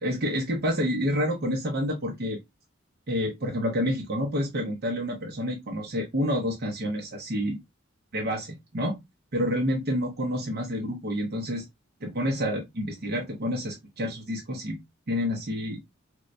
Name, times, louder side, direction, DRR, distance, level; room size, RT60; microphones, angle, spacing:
voice 1, 0.0-2.4 3.1-7.6 8.1-9.0 9.3-11.6 12.0-14.8 15.1-15.8, equal, 50° right, 0.7 m, -28 dB
4.5 x 2.1 x 2.5 m
head